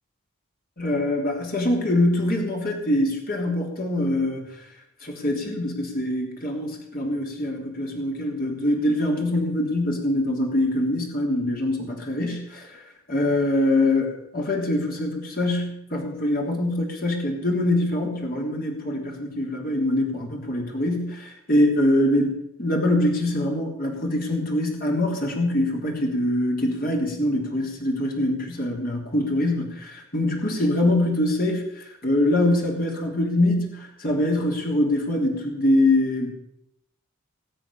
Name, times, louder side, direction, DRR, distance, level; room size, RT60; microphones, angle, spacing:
voice 1, 0.8-4.5 5.0-22.3 22.6-36.3, left 1 dB, 45° left, 0 dB, 3.3 m, -24 dB
19.5 x 7.8 x 7.0 m, 0.77 s
head